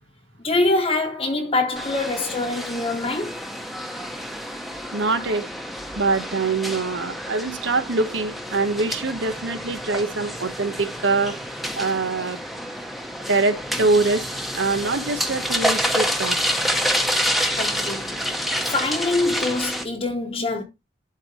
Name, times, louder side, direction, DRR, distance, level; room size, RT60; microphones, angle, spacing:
voice 1, 0.4-3.4 17.6-18.3 18.7-20.6, left 2 dB, 30° left, 0.9 m, -24 dB
sound 1, 1.8-19.8, equal, ahead, 0.8 m, -28 dB
voice 2, 4.9-5.4 6.0-11.3 11.8-12.4 13.3-14.2 14.5-16.4, right 3 dB, 90° right, 1.0 m, -24 dB
11.5 x 3.9 x 3.1 m
head